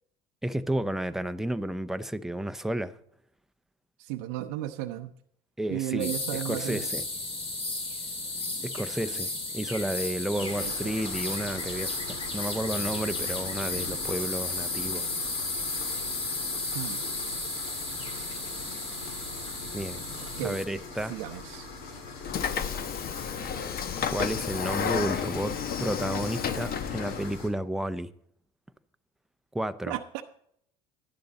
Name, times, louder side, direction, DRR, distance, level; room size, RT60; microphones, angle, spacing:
voice 1, 0.4-3.0 5.6-7.0 8.6-15.1 19.7-20.0 20.4-21.1 24.1-28.1 29.5-30.0, right 1 dB, ahead, 0.6 m, -32 dB
voice 2, 4.0-5.1 5.7-6.9 10.3-10.9 16.7-17.0 20.4-20.6 21.1-21.7 29.9-30.2, right 14 dB, 75° right, 0.6 m, -34 dB
sound 1, 6.0-20.6, left 2 dB, 30° left, 2.4 m, -34 dB
sound 2, 10.3-27.5, left 3 dB, 70° left, 2.7 m, -42 dB
Train / Sliding door, 22.2-27.3, left 7 dB, 45° left, 1.0 m, -31 dB
12.0 x 10.5 x 4.1 m
hypercardioid pair, 75°, 21 cm